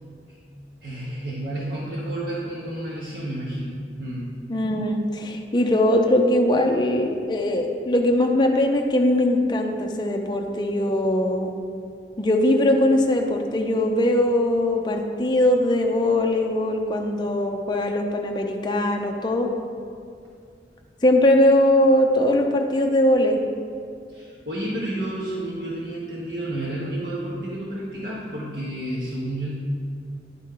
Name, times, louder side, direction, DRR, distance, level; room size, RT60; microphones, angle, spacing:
voice 1, 0.8-4.3 24.1-29.5, right 1 dB, 60° right, -6 dB, 1.0 m, -31 dB
voice 2, 4.5-11.5 12.2-19.5 21.0-23.4, left 1 dB, 25° left, 2 dB, 0.4 m, -21 dB
10.5 x 4.4 x 3.7 m, 2.3 s
head